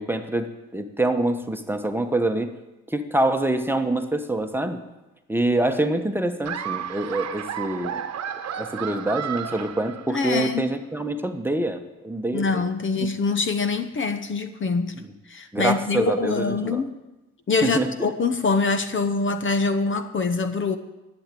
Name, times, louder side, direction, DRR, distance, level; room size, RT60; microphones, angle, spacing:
voice 1, 0.0-2.5 2.9-4.8 5.3-8.0 8.6-12.7 15.0-15.1 15.5-16.8 17.6-17.9, right 1 dB, 5° right, 6 dB, 1.1 m, -25 dB
Laughter, 6.4-10.5, right 9 dB, 60° right, 1.1 m, -32 dB
voice 2, 10.1-10.7 12.3-15.0 15.3-16.9 17.5-20.8, left 4 dB, 40° left, 10 dB, 1.0 m, -24 dB
11.5 x 8.1 x 9.1 m, 1.0 s
cardioid pair, 90°, 30 cm